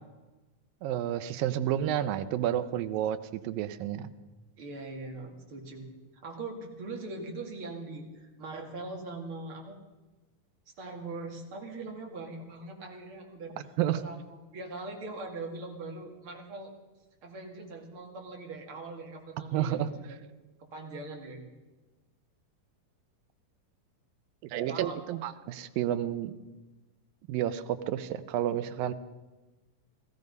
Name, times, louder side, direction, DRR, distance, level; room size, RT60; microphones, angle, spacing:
voice 1, 0.8-3.2 3.4-4.1 13.8-14.0 19.5-19.9 24.5-26.3 27.3-28.9, right 11 dB, 85° right, 12 dB, 2.5 m, -30 dB
voice 2, 4.6-5.9 6.2-9.8 10.8-13.5 13.9-14.2 14.5-16.7 17.2-20.2 20.7-21.4 24.7-25.0, right 3 dB, 40° right, 1 dB, 2.7 m, -41 dB
18.0 x 15.0 x 5.3 m, 1.2 s
omnidirectional pair, 4.0 m